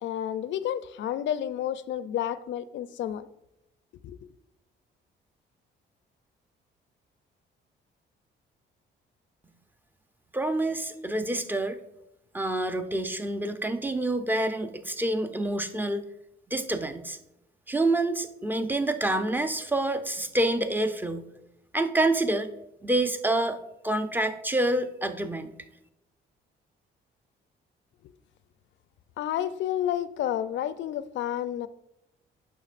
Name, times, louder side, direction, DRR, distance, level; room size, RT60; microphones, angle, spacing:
voice 1, 0.0-3.3 4.0-4.2 29.2-31.7, left 11 dB, 70° left, 0.4 m, -30 dB
voice 2, 10.3-11.8 12.3-16.0 16.5-17.2 17.7-21.3 21.7-22.5 22.8-25.5, right 1 dB, 10° right, 0.6 m, -27 dB
9.0 x 6.2 x 2.5 m
cardioid pair, 90°, 20 cm